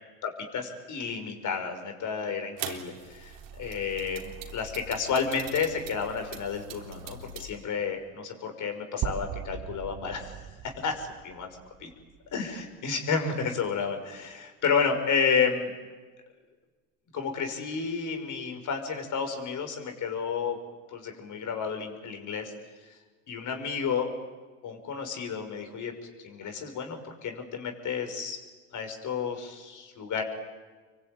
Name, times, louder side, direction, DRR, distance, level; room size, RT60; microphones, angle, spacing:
voice 1, 0.2-10.4 10.8-11.5 11.8-11.9 12.3-15.7 17.1-20.6 20.9-22.5 23.3-24.1 24.6-25.9 26.2-28.4 28.7-30.2, left 6 dB, 50° left, 5 dB, 6.0 m, -31 dB
sound 1, 2.6-7.5, right 7 dB, 65° right, 3.7 m, -42 dB
sound 2, 9.0-13.0, right 10 dB, 50° right, 1.7 m, -39 dB
27.0 x 23.5 x 9.2 m, 1.3 s
hypercardioid pair, 75°, 39 cm